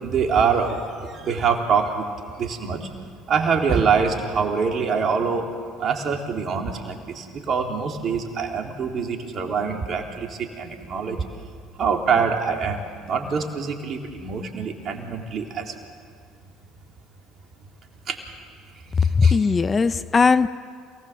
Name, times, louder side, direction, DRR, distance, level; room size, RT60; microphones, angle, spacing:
voice 1, 0.0-0.8 1.1-2.1 2.4-2.8 3.3-5.4 5.8-11.2 11.8-12.8 13.0-15.7 18.1-18.2 19.0-19.4, right 6 dB, 45° right, 2 dB, 3.7 m, -24 dB
voice 2, 19.1-20.5, left 5 dB, 30° left, 13 dB, 0.8 m, -18 dB
28.5 x 19.0 x 7.5 m, 2.1 s
hypercardioid pair, 65°, 0 cm